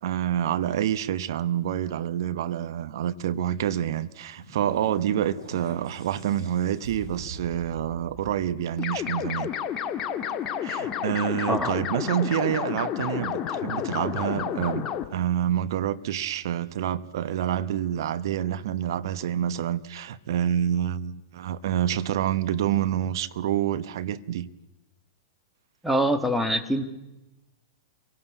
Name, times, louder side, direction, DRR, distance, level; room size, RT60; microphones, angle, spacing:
voice 1, 0.0-9.5 10.6-14.8 15.1-24.5, right 10 dB, 60° right, 0.9 m, -27 dB
sound 1, 4.0-9.3, right 2 dB, 90° right, 7.3 m, -44 dB
sound 2, 8.8-15.1, left 9 dB, 30° left, 1.5 m, -30 dB
voice 2, 25.8-26.8, equal, ahead, 1.6 m, -24 dB
27.0 x 18.0 x 8.3 m
hypercardioid pair, 110°, 2 cm